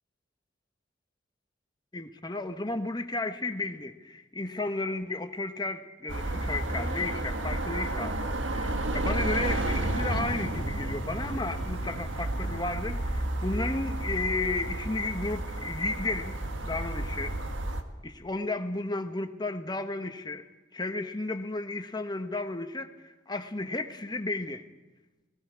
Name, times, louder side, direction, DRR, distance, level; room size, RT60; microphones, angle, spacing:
voice 1, 1.9-8.1 8.5-16.4 16.6-17.4 18.0-20.5 20.7-24.7, left 2 dB, 20° left, 8 dB, 1.1 m, -33 dB
sound 1, 6.1-17.8, right 1 dB, 75° right, 1.6 m, -31 dB
29.0 x 19.0 x 4.7 m, 1.1 s
head